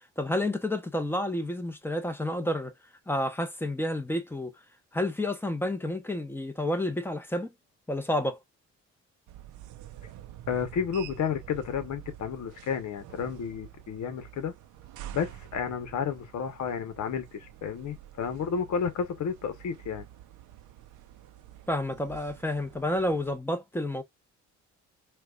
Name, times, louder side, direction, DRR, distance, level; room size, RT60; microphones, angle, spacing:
voice 1, 0.2-2.7 3.1-4.5 4.9-7.5 7.9-8.4 21.7-24.0, left 1 dB, 5° left, 0.9 m, -30 dB
sound 1, 9.3-23.4, right 12 dB, 85° right, 0.6 m, -48 dB
voice 2, 10.5-14.5 15.1-20.1, left 7 dB, 65° left, 1.1 m, -31 dB
4.5 x 2.4 x 2.3 m
cardioid pair, 90°, 30 cm